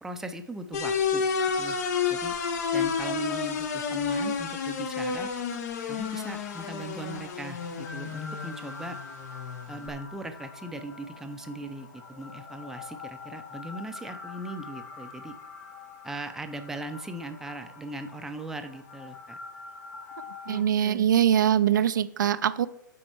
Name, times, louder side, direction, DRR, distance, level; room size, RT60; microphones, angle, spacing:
voice 1, 0.0-1.3 1.6-1.8 2.0-2.4 2.7-5.3 5.9-9.0 9.7-15.4 16.0-19.4 20.5-21.1, right 1 dB, 5° right, 6 dB, 0.5 m, -39 dB
sound 1, 0.7-9.9, left 6 dB, 55° left, 0.9 m, -30 dB
sound 2, 1.4-20.6, left 4 dB, 35° left, 2.4 m, -46 dB
voice 2, 20.5-22.7, right 9 dB, 70° right, 13 dB, 0.4 m, -23 dB
7.6 x 4.3 x 4.5 m, 0.81 s
hypercardioid pair, 115°, 11 cm